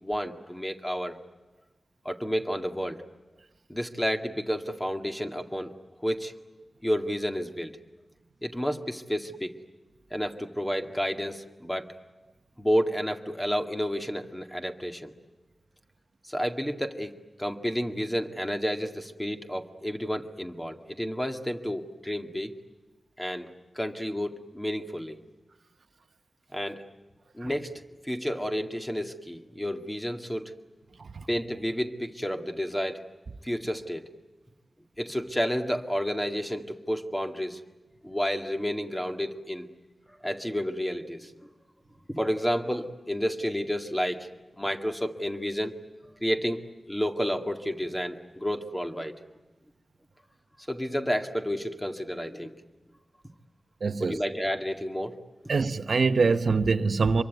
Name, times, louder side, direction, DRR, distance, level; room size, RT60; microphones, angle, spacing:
voice 1, 0.0-1.2 2.1-3.0 3.7-5.7 6.0-6.3 6.8-7.7 8.4-9.5 10.1-11.9 12.6-15.1 16.3-17.1 17.4-22.5 23.2-23.5 23.8-25.2 26.5-26.8 27.3-30.6 31.3-33.1 33.4-34.1 35.0-37.6 38.0-39.7 40.2-41.3 42.1-44.3 44.6-45.8 46.2-49.2 50.7-52.6 54.0-55.2, equal, 10° left, 2.0 m, -30 dB
voice 2, 53.8-54.2 55.5-57.2, right 4 dB, 70° right, 1.1 m, -24 dB
26.0 x 23.5 x 9.3 m
wide cardioid pair, 105°, 0 cm